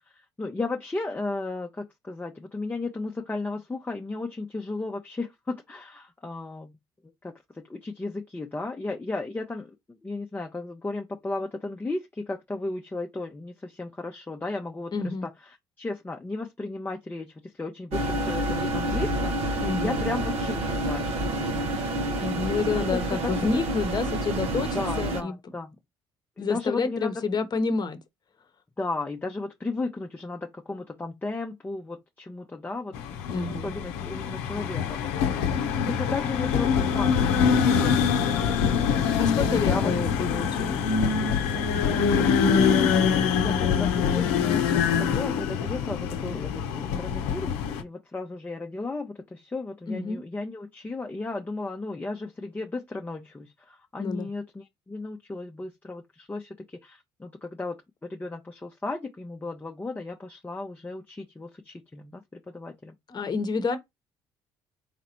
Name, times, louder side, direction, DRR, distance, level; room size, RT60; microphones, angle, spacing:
voice 1, 0.0-6.8 7.2-14.9 15.2-15.3 15.8-21.6 22.7-23.6 24.7-25.7 26.4-27.1 28.8-33.3 33.6-35.1 35.9-38.5 39.4-39.9 42.7-63.0, left 3 dB, 15° left, 0.7 m, -35 dB
voice 2, 14.9-15.3 19.6-20.0 22.2-25.4 26.4-28.0 33.3-33.7 39.2-40.8 49.9-50.2 54.0-54.3 63.1-63.8, left 4 dB, 40° left, 0.9 m, -29 dB
sound 1, 17.9-25.2, right 1 dB, 70° right, 0.9 m, -28 dB
sound 2, 32.9-47.8, left 6 dB, 85° left, 0.7 m, -24 dB
3.9 x 3.3 x 3.0 m
supercardioid pair, 70°, 11 cm